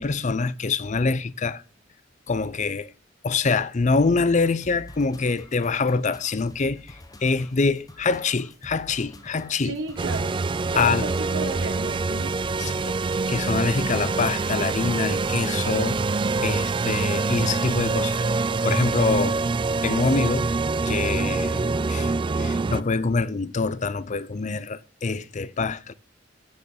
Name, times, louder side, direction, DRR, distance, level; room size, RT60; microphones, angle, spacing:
voice 1, 0.0-1.6 2.3-2.9 3.2-9.8 10.8-11.1 12.6-13.0 13.3-16.0 16.4-19.4 19.8-20.5 20.8-25.9, left 4 dB, 40° left, 0.5 m, -25 dB
sound 1, 4.4-11.2, left 1 dB, 20° left, 0.9 m, -47 dB
voice 2, 9.6-12.3, right 3 dB, 85° right, 1.1 m, -33 dB
sound 2, 10.0-22.8, right 3 dB, 25° right, 0.3 m, -25 dB
7.7 x 6.8 x 4.4 m
head